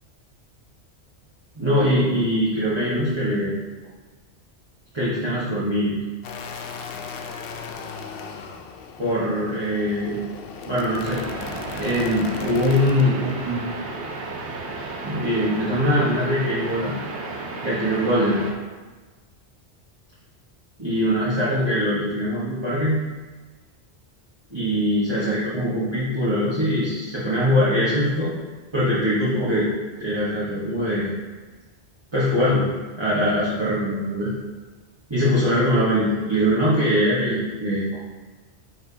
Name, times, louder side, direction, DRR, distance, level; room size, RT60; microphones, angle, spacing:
voice 1, 1.5-3.5 4.9-6.0 9.0-10.2 10.6-11.2 11.7-13.7 15.0-16.9 17.6-18.4 20.8-23.0 24.5-28.3 28.7-29.7 30.0-31.1 32.1-32.7 33.0-34.3 35.1-37.9, equal, 25° right, -10 dB, 1.4 m, -22 dB
sound 1, 6.2-13.1, left 5 dB, 65° left, 0.8 m, -37 dB
sound 2, 11.0-18.5, right 3 dB, 75° right, 1.1 m, -33 dB
9.2 x 4.5 x 2.8 m, 1.3 s
omnidirectional pair, 1.1 m